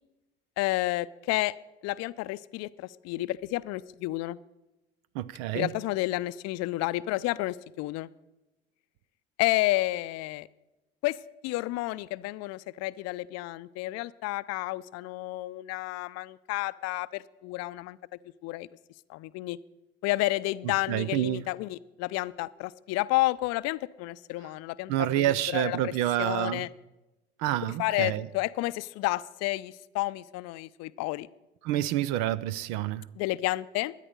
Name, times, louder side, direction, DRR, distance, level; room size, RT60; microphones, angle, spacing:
voice 1, 0.6-1.5 1.8-4.4 5.5-8.1 9.4-10.5 11.0-11.2 11.4-18.0 18.4-18.7 19.1-19.6 20.0-25.9 26.2-26.7 27.8-31.3 33.2-33.9, left 18 dB, 60° left, 0.6 m, -31 dB
voice 2, 5.1-5.8 20.9-21.4 24.9-26.7 27.4-28.3 31.6-33.1, right 13 dB, 65° right, 0.6 m, -28 dB
13.0 x 9.9 x 6.6 m
hypercardioid pair, 55°, 30 cm